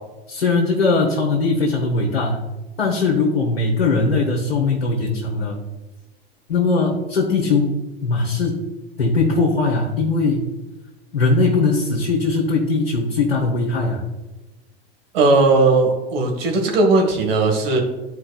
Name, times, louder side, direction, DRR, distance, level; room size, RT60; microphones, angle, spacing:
voice 1, 0.3-2.4 2.8-5.6 6.5-7.8 8.0-8.6 9.0-10.5 11.1-14.0, left 3 dB, 85° left, -2 dB, 1.2 m, -20 dB
voice 2, 15.1-17.8, right 3 dB, 70° right, 2 dB, 1.7 m, -17 dB
11.0 x 4.5 x 2.3 m, 1.1 s
hypercardioid pair, 85°, 30 cm